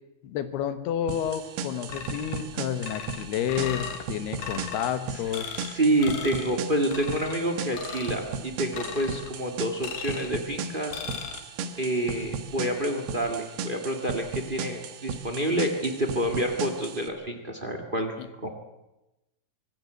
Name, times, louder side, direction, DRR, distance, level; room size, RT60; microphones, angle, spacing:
voice 1, 0.2-5.7 18.2-18.3, left 9 dB, 80° left, 10 dB, 3.4 m, -30 dB
sound 1, 1.1-17.1, right 5 dB, 85° right, 3.4 m, -36 dB
sound 2, 1.9-2.5 2.8-4.0 4.4-4.9 5.3-5.7 6.0-6.5 6.9-7.4 7.7-8.2 8.7-9.3 9.8-10.4 10.9-11.4, left 7 dB, 65° left, 3.1 m, -37 dB
voice 2, 5.5-11.0 11.8-18.5, right 1 dB, 40° right, 5 dB, 0.7 m, -28 dB
24.5 x 15.5 x 7.9 m, 0.97 s
omnidirectional pair, 4.5 m